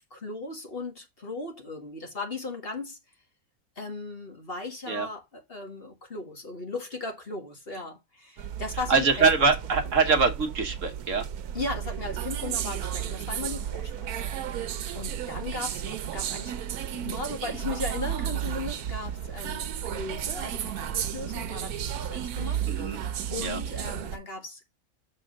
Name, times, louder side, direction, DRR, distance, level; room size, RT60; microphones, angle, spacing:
voice 1, 0.1-3.0 3.8-9.3 9.8-9.9 11.5-16.5 16.9-23.0 23.3-24.8, left 3 dB, 40° left, 1.8 m, -37 dB
sound 1, 8.4-24.2, right 9 dB, 90° right, 1.3 m, -33 dB
voice 2, 8.9-11.2 14.8-15.0 22.6-23.0 23.4-23.6, right 4 dB, 60° right, 1.5 m, -24 dB
6.9 x 3.8 x 6.4 m
omnidirectional pair, 1.5 m